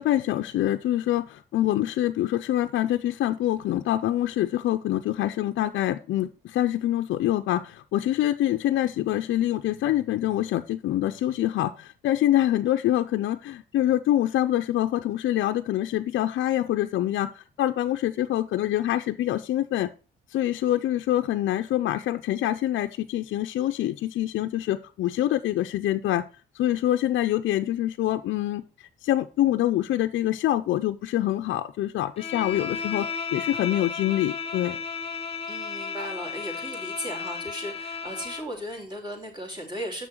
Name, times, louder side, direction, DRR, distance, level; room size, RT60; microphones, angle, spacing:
voice 1, 0.0-19.9 20.3-26.2 26.5-34.8, left 13 dB, 75° left, 7 dB, 0.5 m, -25 dB
Bowed string instrument, 32.2-38.5, left 5 dB, 30° left, 1.0 m, -34 dB
voice 2, 35.5-40.1, equal, 20° right, 1 dB, 3.1 m, -36 dB
6.9 x 6.1 x 4.4 m, 0.34 s
cardioid pair, 90°, 20 cm